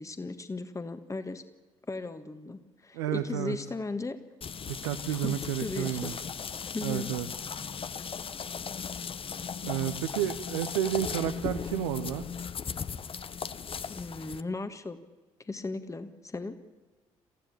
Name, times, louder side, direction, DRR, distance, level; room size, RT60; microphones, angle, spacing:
voice 1, 0.0-1.4 1.9-4.2 5.1-6.1 6.7-7.1 13.9-15.0 15.4-16.6, left 3 dB, 20° left, 9 dB, 1.7 m, -36 dB
voice 2, 2.9-3.6 4.7-6.1 6.8-7.3 9.6-12.3, right 11 dB, 75° right, 8 dB, 1.0 m, -31 dB
sound 1, 4.4-14.4, left 6 dB, 35° left, 1.0 m, -37 dB
28.0 x 15.0 x 8.7 m, 1.2 s
figure-of-eight pair, 45°, 16 cm